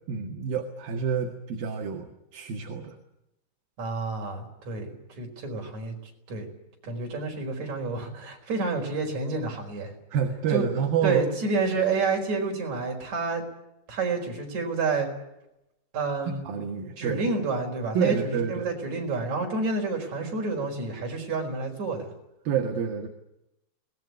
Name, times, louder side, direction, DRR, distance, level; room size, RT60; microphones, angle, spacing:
voice 1, 0.1-3.0 10.1-11.2 16.3-17.2 17.9-18.7 22.4-23.1, right 7 dB, 60° right, 3 dB, 3.3 m, -28 dB
voice 2, 3.8-5.9 6.3-6.5 6.8-9.9 10.5-10.6 11.0-13.4 13.9-15.1 15.9-16.4 17.0-22.1, right 3 dB, 40° right, 2 dB, 5.9 m, -29 dB
23.0 x 20.0 x 9.8 m, 0.88 s
omnidirectional pair, 5.2 m